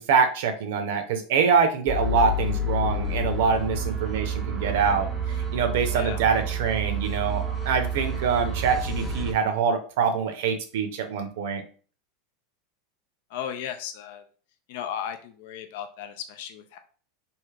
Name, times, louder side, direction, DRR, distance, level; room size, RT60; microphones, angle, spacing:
voice 1, 0.0-11.6, right 6 dB, 75° right, 7 dB, 0.5 m, -25 dB
sound 1, 1.9-9.3, right 1 dB, ahead, 0.7 m, -29 dB
voice 2, 13.3-14.2 14.7-16.8, left 9 dB, 70° left, 8 dB, 0.3 m, -35 dB
3.2 x 2.8 x 2.3 m, 0.41 s
supercardioid pair, 120°, 0 cm